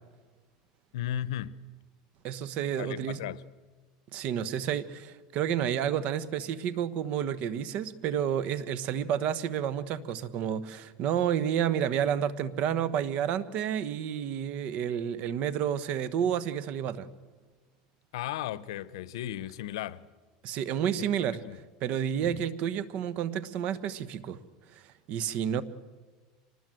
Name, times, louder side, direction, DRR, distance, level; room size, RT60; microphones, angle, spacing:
voice 1, 0.9-1.5 2.8-3.4 18.1-20.0 21.0-21.1 21.4-21.6 22.2-22.4, left 12 dB, 90° left, 0.8 m, -35 dB
voice 2, 2.2-3.2 4.1-17.1 20.4-24.4 24.7-24.8 25.1-25.6, right 9 dB, 50° right, 1.2 m, -30 dB
25.5 x 20.0 x 7.8 m
supercardioid pair, 135°, 3 cm